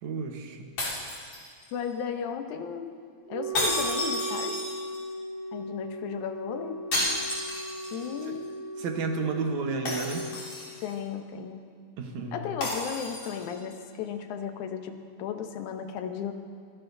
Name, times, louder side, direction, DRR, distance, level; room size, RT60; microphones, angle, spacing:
voice 1, 0.0-0.7 8.8-10.3 12.0-12.4, right 4 dB, 75° right, 4 dB, 2.5 m, -32 dB
sound 1, 0.8-1.9 3.5-5.1 6.9-8.1 8.4-8.5 9.9-10.9 12.6-13.5, left 1 dB, 65° left, 4.8 m, -32 dB
voice 2, 1.7-2.9 3.3-4.6 5.5-6.8 7.9-8.5 10.8-11.7 12.3-16.3, left 7 dB, 85° left, 6 dB, 2.3 m, -35 dB
Wind instrument woodwind instrument, 3.3-10.3, right 1 dB, 50° right, 2.6 m, -37 dB
24.0 x 16.5 x 2.7 m, 2.1 s
omnidirectional pair, 3.3 m